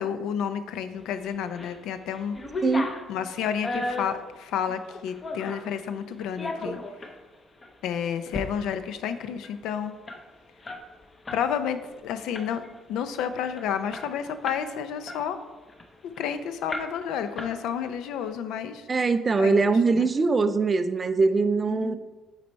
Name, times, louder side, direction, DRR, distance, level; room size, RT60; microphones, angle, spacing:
voice 1, 0.0-2.4 3.1-6.8 7.8-10.0 11.3-12.6 12.9-15.4 16.2-18.9 19.4-19.5 19.9-20.1 21.7-22.0, left 8 dB, 80° left, 10 dB, 0.6 m, -30 dB
sound 1, 1.2-1.8 2.1-5.7 6.2-7.2 7.6-7.7 8.1-8.5 8.8-8.9 9.1-11.5 11.8-12.0 12.3-12.8 13.2-13.3 13.6-14.7 15.1-16.2 16.7-17.1 17.4-18.0, left 2 dB, 20° left, 0.6 m, -35 dB
voice 2, 2.6-2.9 6.6-6.7 18.9-22.0, right 4 dB, 20° right, 10 dB, 0.3 m, -22 dB
8.3 x 4.1 x 4.5 m, 1.2 s
cardioid pair, 175°, 0 cm